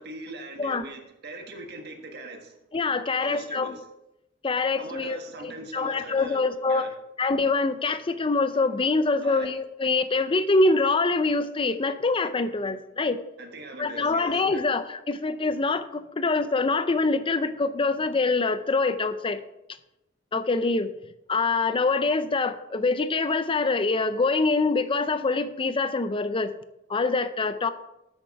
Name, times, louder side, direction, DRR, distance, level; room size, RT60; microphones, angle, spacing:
voice 1, 0.0-2.6 3.2-3.8 4.7-6.9 9.2-9.6 13.4-14.6, right 2 dB, 55° right, 4 dB, 1.5 m, -41 dB
voice 2, 2.7-3.8 4.4-6.9 7.2-13.2 13.8-19.4 20.3-20.9 21.3-26.5 26.9-27.7, left 3 dB, 25° left, 11 dB, 0.5 m, -25 dB
8.1 x 6.6 x 5.8 m, 0.90 s
head